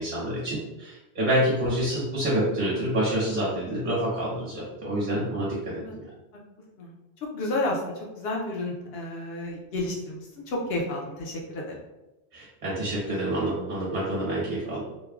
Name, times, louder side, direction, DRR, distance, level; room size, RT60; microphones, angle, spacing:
voice 1, 0.0-6.0 12.3-14.8, right 1 dB, 50° right, -6 dB, 1.1 m, -27 dB
voice 2, 7.2-11.7, left 2 dB, 70° left, -1 dB, 0.9 m, -31 dB
3.1 x 2.2 x 2.3 m, 0.98 s
omnidirectional pair, 1.1 m